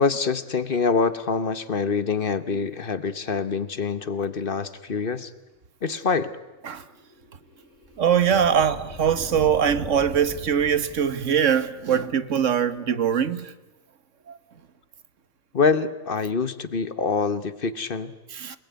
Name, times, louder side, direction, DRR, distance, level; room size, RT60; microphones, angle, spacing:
voice 1, 0.0-5.3 5.8-6.3 15.5-18.1 18.5-18.6, left 5 dB, 50° left, 1.2 m, -25 dB
sound 1, 6.5-12.0, left 1 dB, 80° left, 5.6 m, -41 dB
voice 2, 8.0-13.5 18.3-18.6, right 8 dB, 80° right, 1.5 m, -22 dB
28.0 x 19.5 x 9.4 m
omnidirectional pair, 1.3 m